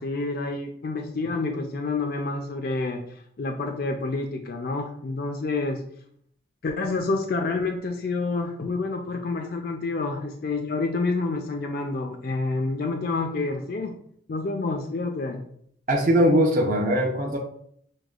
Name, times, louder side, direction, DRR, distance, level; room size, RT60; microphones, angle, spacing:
voice 1, 0.0-3.0 3.4-5.8 6.6-14.0 14.3-15.4, left 3 dB, 50° left, 4 dB, 0.4 m, -28 dB
voice 2, 15.9-17.4, equal, 45° right, -2 dB, 0.6 m, -20 dB
6.4 x 2.1 x 2.3 m, 0.65 s
head